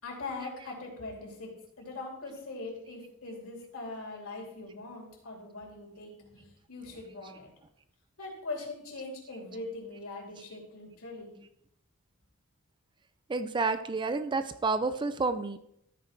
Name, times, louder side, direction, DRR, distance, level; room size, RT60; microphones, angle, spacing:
voice 1, 0.0-1.5 1.8-7.5 8.2-11.3, left 3 dB, 70° left, -1 dB, 3.0 m, -41 dB
voice 2, 13.3-15.6, right 3 dB, 20° right, 11 dB, 0.4 m, -30 dB
13.0 x 4.6 x 4.4 m, 0.75 s
head